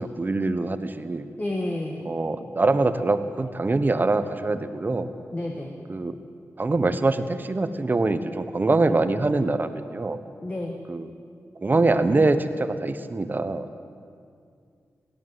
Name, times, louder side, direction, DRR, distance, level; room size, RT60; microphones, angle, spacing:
voice 1, 0.0-1.3 2.0-5.1 5.9-6.2 6.6-10.2 10.9-11.1 11.6-13.7, right 3 dB, 35° right, 10 dB, 1.2 m, -24 dB
voice 2, 1.4-2.0 5.3-5.7 10.4-10.8, left 1 dB, 25° left, 0 dB, 2.0 m, -30 dB
22.5 x 16.5 x 8.0 m, 2.3 s
wide cardioid pair, 105°, 6 cm